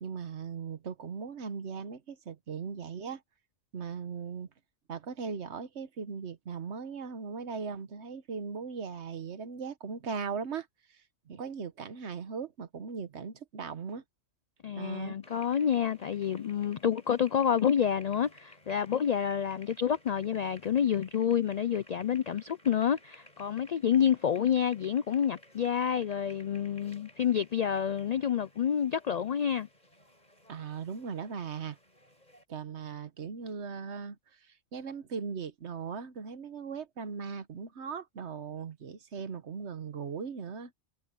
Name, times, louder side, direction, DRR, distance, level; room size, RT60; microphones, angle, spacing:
voice 1, 0.0-3.2 3.7-4.5 4.9-11.0 11.3-14.0 14.8-15.2 30.5-31.8 32.5-34.2 34.7-40.7, right 6 dB, 65° right, 1.3 m, -38 dB
voice 2, 14.6-29.7, left 8 dB, 85° left, 0.3 m, -28 dB
sound 1, 15.2-32.4, left 1 dB, 35° left, 6.9 m, -58 dB
omnidirectional pair, 1.3 m